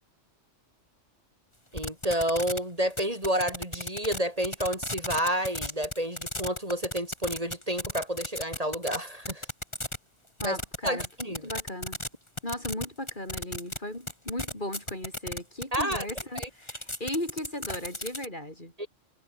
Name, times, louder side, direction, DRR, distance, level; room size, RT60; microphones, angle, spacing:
voice 1, 1.7-9.5 10.4-10.6 10.8-11.5 15.7-16.0 16.3-16.5 18.8-18.9, equal, 30° right, 7.5 m, -30 dB
sound 1, 1.8-2.6 2.9-4.2 4.4-9.0 9.3-10.0 10.4-12.1 12.4-13.8 14.1-18.3, left 1 dB, 20° left, 5.7 m, -34 dB
voice 2, 10.4-11.1 11.4-12.0 12.4-18.7, left 1 dB, 40° left, 6.0 m, -36 dB
omnidirectional pair, 1.3 m